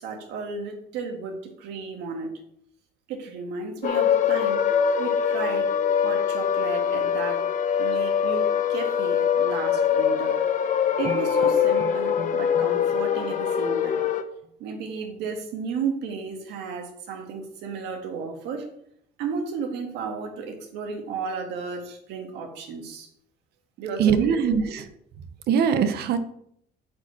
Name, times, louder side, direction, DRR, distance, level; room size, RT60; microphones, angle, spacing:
voice 1, 0.0-2.3 3.1-4.6 5.0-5.7 6.0-7.4 7.8-10.4 11.0-14.1 14.6-18.7 19.2-23.1 23.8-24.3 24.7-24.8, right 5 dB, 90° right, 3 dB, 1.9 m, -33 dB
sound 1, 3.8-14.2, left 8 dB, 50° left, 0.9 m, -23 dB
sound 2, 11.0-14.1, right 7 dB, 40° right, 0.6 m, -38 dB
voice 2, 24.0-24.8 25.5-26.2, right 7 dB, 70° right, 10 dB, 1.0 m, -21 dB
8.5 x 4.9 x 5.8 m, 0.71 s
cardioid pair, 110°, 17 cm